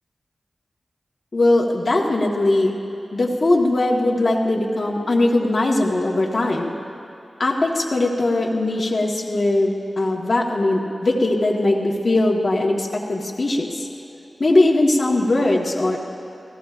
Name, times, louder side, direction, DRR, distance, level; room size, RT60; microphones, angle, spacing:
voice 1, 1.3-2.8 3.1-6.7 7.4-13.9 14.4-16.0, left 2 dB, 50° left, -2 dB, 1.6 m, -20 dB
28.5 x 17.0 x 2.5 m, 2.9 s
wide cardioid pair, 70°, 0 cm